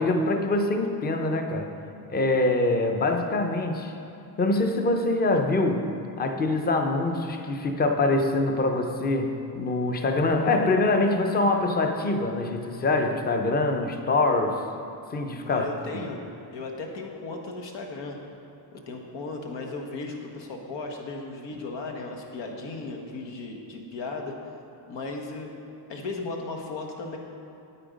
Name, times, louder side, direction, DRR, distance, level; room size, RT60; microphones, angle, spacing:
voice 1, 0.0-1.7 2.1-3.9 4.4-5.9 6.2-14.6 15.1-15.7 15.9-16.1, left 2 dB, 25° left, 5 dB, 0.6 m, -24 dB
voice 2, 15.5-16.2 16.5-18.2 18.7-24.3 24.9-25.5 25.9-27.2, left 3 dB, 85° left, 2 dB, 1.5 m, -36 dB
8.8 x 8.7 x 5.2 m, 2.9 s
cardioid pair, 150°, 42 cm